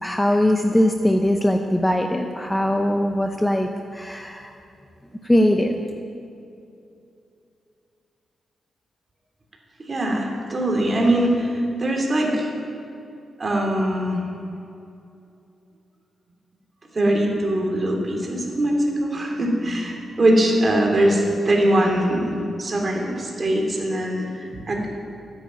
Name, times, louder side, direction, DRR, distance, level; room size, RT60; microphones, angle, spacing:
voice 1, 0.0-4.5 5.2-5.8, left 1 dB, 10° left, 4 dB, 0.8 m, -21 dB
voice 2, 9.9-12.5 13.4-14.2 16.9-24.9, right 1 dB, 30° right, 0 dB, 3.1 m, -22 dB
13.5 x 10.0 x 9.4 m, 2.7 s
wide cardioid pair, 125°, 0 cm